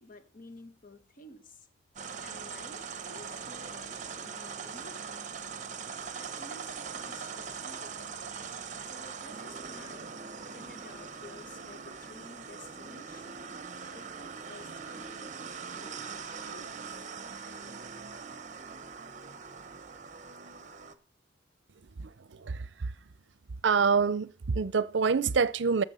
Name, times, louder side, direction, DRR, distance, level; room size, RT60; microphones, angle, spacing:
voice 1, 0.0-1.7 2.2-5.3 6.1-8.2 8.8-10.1 10.5-13.5 13.9-15.4 15.7-16.0 16.4-17.1, left 2 dB, 50° left, 1.2 m, -52 dB
sound 1, 2.0-20.9, right 5 dB, 40° right, 0.9 m, -42 dB
voice 2, 21.8-22.9 23.6-25.8, right 5 dB, 75° right, 0.6 m, -27 dB
13.5 x 7.1 x 5.6 m
head